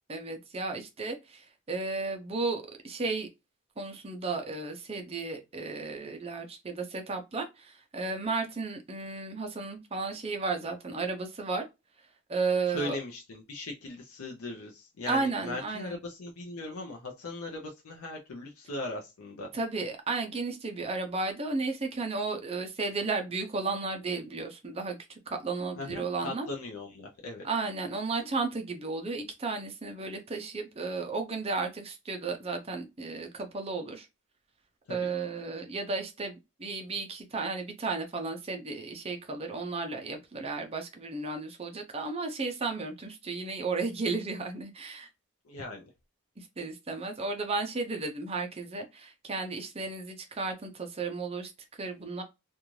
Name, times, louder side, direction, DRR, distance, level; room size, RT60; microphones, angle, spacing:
voice 1, 0.1-3.3 3.8-11.6 12.3-13.0 15.1-16.0 19.5-26.5 27.4-34.1 34.9-45.1 46.4-52.2, right 3 dB, 25° right, 0.5 m, -34 dB
voice 2, 12.7-19.5 25.8-27.5 34.9-35.1 45.4-45.9, left 2 dB, 80° left, 0.6 m, -39 dB
2.5 x 2.3 x 3.0 m
head